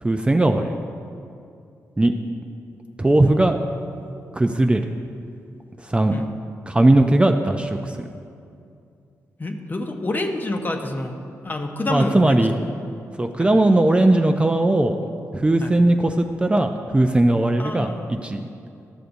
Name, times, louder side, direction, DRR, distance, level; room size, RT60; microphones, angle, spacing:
voice 1, 0.0-0.8 2.0-2.1 3.0-3.6 4.3-4.8 5.9-6.1 6.7-8.1 11.9-12.5 13.2-15.0 15.3-18.5, right 2 dB, 15° right, 5 dB, 0.4 m, -18 dB
voice 2, 9.4-11.1 11.4-12.6 15.6-15.7 17.6-18.1, left 2 dB, 30° left, 4 dB, 0.7 m, -27 dB
12.0 x 6.6 x 2.6 m, 2.5 s
cardioid pair, 60°, 6 cm